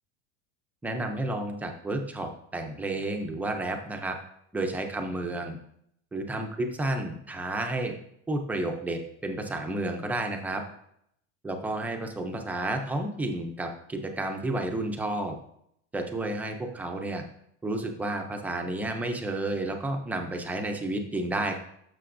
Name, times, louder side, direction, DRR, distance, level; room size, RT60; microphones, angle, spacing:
voice 1, 0.8-4.2 4.5-5.6 6.1-7.9 8.3-10.6 11.4-15.4 15.9-17.2 17.6-21.6, right 2 dB, 5° right, 4 dB, 0.3 m, -31 dB
12.5 x 5.9 x 2.5 m, 0.72 s
cardioid pair, 170°, 35 cm